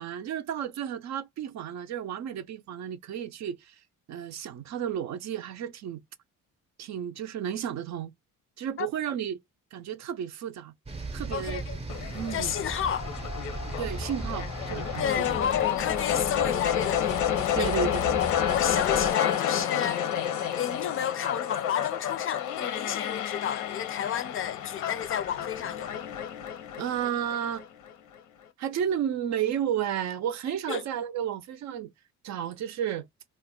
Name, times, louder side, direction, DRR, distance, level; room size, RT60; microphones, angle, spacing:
voice 1, 0.0-3.7 4.1-6.0 6.8-8.1 8.6-9.4 9.7-10.7 11.1-11.7 12.1-12.6 13.8-15.2 17.6-18.1 26.8-27.7 28.6-31.9 32.2-33.1, right 9 dB, 65° right, 0.5 m, -32 dB
sound 1, 10.9-19.1, right 2 dB, 20° right, 0.6 m, -38 dB
voice 2, 11.3-11.8 12.3-13.1 15.0-17.7 18.2-20.0 20.6-25.9 30.7-30.8, left 9 dB, 45° left, 0.4 m, -31 dB
sound 2, 11.9-27.9, left 10 dB, 90° left, 0.6 m, -30 dB
2.4 x 2.1 x 3.6 m
cardioid pair, 90°, 30 cm